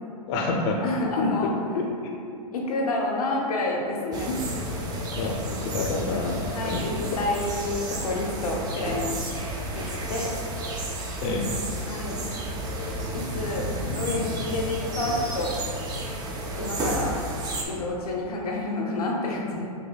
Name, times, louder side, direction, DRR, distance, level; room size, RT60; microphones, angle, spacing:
voice 1, 0.2-0.8 1.2-1.5 1.8-1.9 5.2-6.8 9.8-9.9 11.2-11.5, left 3 dB, 45° left, 1 dB, 0.5 m, -28 dB
voice 2, 0.8-1.5 2.5-4.5 6.5-9.1 9.7-10.3 11.9-12.2 13.1-15.5 16.6-17.2 17.7-19.7, left 2 dB, 90° left, -1 dB, 0.7 m, -29 dB
sound 1, 4.1-17.7, right 1 dB, 20° right, 0.4 m, -32 dB
5.3 x 2.2 x 2.3 m, 2.5 s
hypercardioid pair, 120°, 19 cm